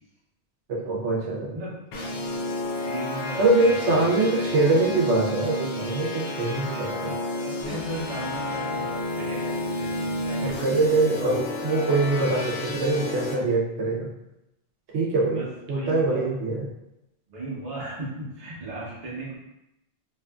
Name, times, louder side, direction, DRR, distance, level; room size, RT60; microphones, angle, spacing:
voice 1, 0.7-1.6 3.4-7.1 10.4-14.1 14.9-16.6, right 2 dB, 85° right, -3 dB, 1.0 m, -23 dB
sound 1, 1.9-13.3, left 2 dB, 70° left, 0.8 m, -31 dB
voice 2, 2.8-3.6 4.3-4.5 6.9-10.6 15.2-15.5 15.7-16.3 17.3-19.4, right 2 dB, 40° right, -6 dB, 0.8 m, -36 dB
2.7 x 2.4 x 2.2 m, 0.88 s
omnidirectional pair, 1.1 m